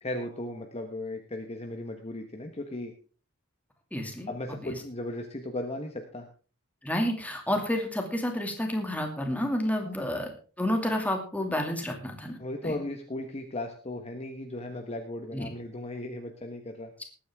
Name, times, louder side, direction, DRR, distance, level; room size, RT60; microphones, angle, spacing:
voice 1, 0.0-2.9 4.3-6.3 9.8-10.1 12.4-16.9, left 1 dB, 30° left, 4 dB, 1.3 m, -36 dB
voice 2, 3.9-4.7 6.8-10.3 10.6-12.4 12.6-12.8 15.3-15.5, left 1 dB, 5° left, 3 dB, 2.4 m, -30 dB
19.5 x 9.4 x 3.6 m, 0.38 s
head